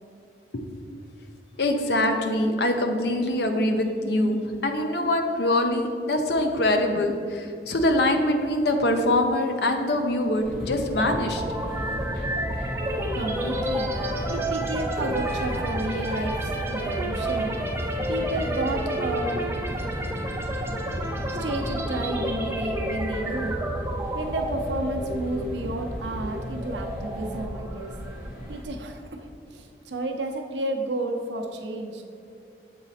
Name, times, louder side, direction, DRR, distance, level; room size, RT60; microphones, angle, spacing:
voice 1, 1.6-11.4, left 1 dB, 70° left, 5 dB, 0.6 m, -24 dB
sound 1, 10.4-28.6, equal, 50° left, 1.3 m, -34 dB
sound 2, 11.0-28.7, right 1 dB, 15° right, 0.5 m, -33 dB
Wind instrument woodwind instrument, 12.7-19.2, right 1 dB, 35° right, 0.8 m, -33 dB
voice 2, 13.1-14.0 14.3-17.6 18.1-19.4 21.4-23.6 24.1-27.9 28.5-32.0, right 1 dB, 85° right, 3 dB, 0.6 m, -31 dB
7.4 x 4.0 x 4.1 m, 2.4 s
head